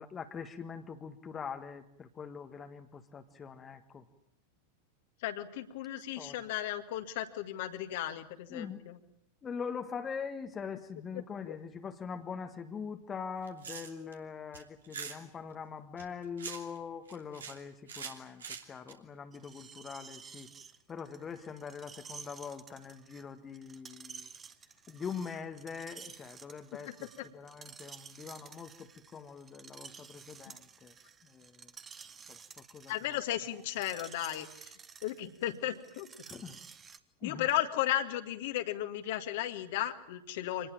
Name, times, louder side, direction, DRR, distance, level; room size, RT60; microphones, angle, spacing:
voice 1, 0.0-4.0 6.2-6.3 8.5-8.9 9.4-18.4 18.7-20.5 20.9-24.3 24.9-27.1 27.3-30.9 31.3-31.7 32.3-32.9 36.3-36.6 37.2-37.5, left 6 dB, 20° left, 7 dB, 1.6 m, -43 dB
voice 2, 5.2-9.0 11.1-11.6 26.9-27.3 32.9-34.7 35.0-36.1 37.2-40.7, left 13 dB, 50° left, 7 dB, 2.0 m, -35 dB
sound 1, 13.4-14.1 14.5-15.2 16.0-16.8 17.1-17.6 17.9-18.9, right 6 dB, 70° right, 3.0 m, -43 dB
Screech, 19.3-37.0, right 6 dB, 20° right, 1.4 m, -52 dB
25.5 x 20.0 x 9.0 m, 0.74 s
figure-of-eight pair, 90°, 0 cm